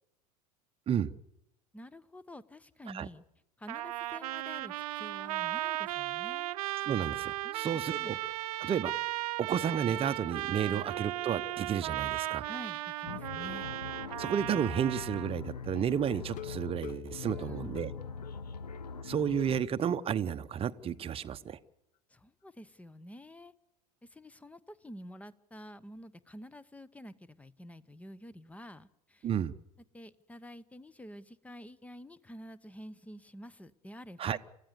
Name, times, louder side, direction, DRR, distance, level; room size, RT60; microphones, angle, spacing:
voice 1, 1.7-3.2 3.6-6.5 7.4-8.2 10.6-10.8 12.4-13.7 17.2-17.9 22.1-23.5 24.0-29.3 29.9-34.4, equal, 5° left, 19 dB, 1.0 m, -49 dB
Trumpet, 3.7-15.3, right 16 dB, 60° right, 0.9 m, -36 dB
voice 2, 6.9-8.2 8.6-9.0 9.4-12.4 14.2-17.9 19.0-21.6 29.2-29.5 34.2-34.4, right 8 dB, 30° right, 12 dB, 0.9 m, -32 dB
sound 1, 13.1-19.6, left 5 dB, 80° left, 0.8 m, -42 dB
sound 2, 16.2-18.8 19.1-19.2 19.6-19.7 20.1-20.2, left 12 dB, 35° left, 0.8 m, -47 dB
28.5 x 15.0 x 7.0 m, 0.84 s
figure-of-eight pair, 75°, 21 cm